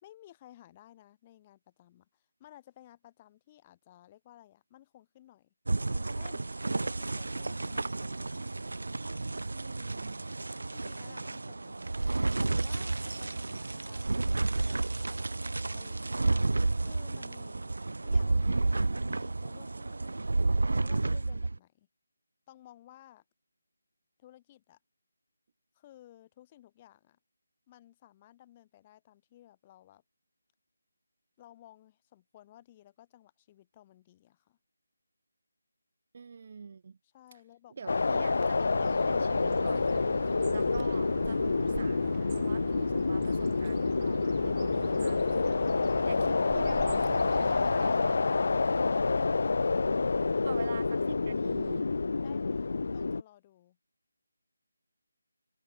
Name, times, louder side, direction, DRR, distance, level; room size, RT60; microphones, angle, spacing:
voice 1, 0.0-5.5 5.9-6.5 6.8-8.3 10.7-12.0 12.4-16.3 16.8-17.7 18.0-20.3 20.7-21.9 22.5-23.2 24.2-24.8 25.8-27.2 27.7-30.0 31.4-34.6 37.1-38.2 47.4-49.3 49.7-50.7 52.2-53.8, left 13 dB, 15° left, 5.0 m, -56 dB
sound 1, 5.7-21.6, right 2 dB, 75° right, 2.2 m, -31 dB
voice 2, 9.5-10.2 36.1-37.0 37.8-40.1 40.5-45.6 46.0-47.4 47.8-48.2 50.5-51.9, right 5 dB, 35° right, 2.7 m, -45 dB
sound 2, 37.9-53.2, left 4 dB, 50° left, 1.2 m, -28 dB
Bird, 38.4-48.1, right 12 dB, 20° right, 4.1 m, -45 dB
figure-of-eight pair, 175°, 0 cm